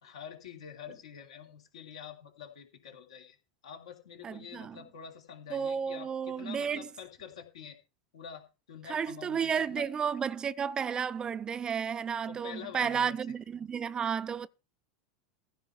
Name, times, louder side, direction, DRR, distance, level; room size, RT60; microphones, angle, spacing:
voice 1, 0.0-3.4 3.6-7.8 8.1-9.9 12.3-13.2, left 8 dB, 75° left, 3.0 m, -46 dB
voice 2, 4.2-4.8 5.5-6.9 8.9-14.5, right 7 dB, 25° right, 0.6 m, -32 dB
15.0 x 5.1 x 6.9 m
hypercardioid pair, 90°, 3 cm